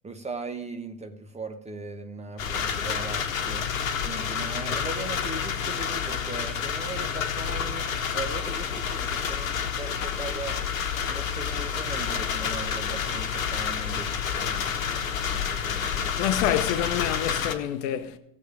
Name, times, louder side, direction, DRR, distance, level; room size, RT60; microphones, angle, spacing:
voice 1, 0.0-3.6 4.0-10.6 11.1-16.4, right 3 dB, 15° right, 1.3 m, -39 dB
sound 1, 2.4-17.5, left 7 dB, 75° left, 1.2 m, -29 dB
voice 2, 16.2-18.2, left 11 dB, 55° left, 0.9 m, -27 dB
16.5 x 7.3 x 4.9 m
figure-of-eight pair, 70°, 40 cm